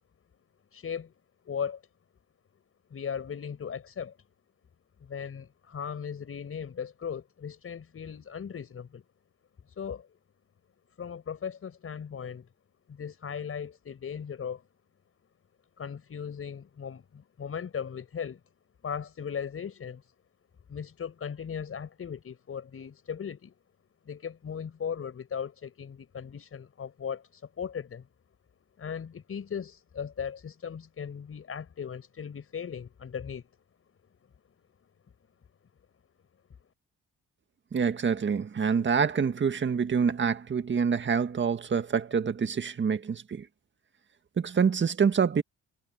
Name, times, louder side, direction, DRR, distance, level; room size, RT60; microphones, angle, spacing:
voice 1, 0.7-1.1 1.5-1.8 2.9-4.2 5.0-9.0 9.8-10.1 11.0-12.5 12.9-14.6 15.8-18.4 18.8-20.0 20.7-23.5 24.1-28.0 28.8-33.4, left 7 dB, 45° left, 5.6 m, -37 dB
voice 2, 37.7-43.5 44.4-45.4, right 6 dB, 40° right, 1.8 m, -26 dB
cardioid pair, 90°, 30 cm